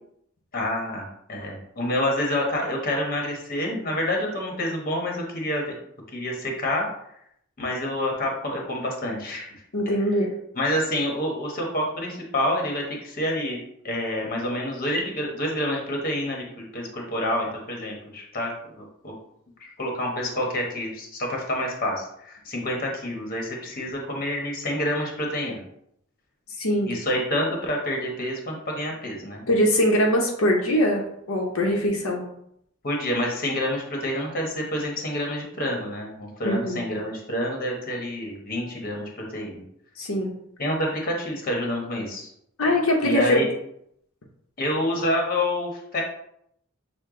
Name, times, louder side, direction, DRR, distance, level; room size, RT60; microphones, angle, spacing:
voice 1, 0.5-5.8 6.1-6.9 7.6-9.5 9.9-10.0 10.5-13.6 13.8-19.1 19.6-25.6 26.9-29.4 32.8-39.6 40.6-42.3 43.0-43.5 44.6-46.0, left 1 dB, 45° left, 0 dB, 1.1 m, -28 dB
voice 2, 9.7-10.3 26.6-26.9 29.5-32.3 36.4-36.8 40.0-40.3 42.6-43.4, equal, 80° left, -1 dB, 0.8 m, -22 dB
6.5 x 2.2 x 3.7 m, 0.73 s
head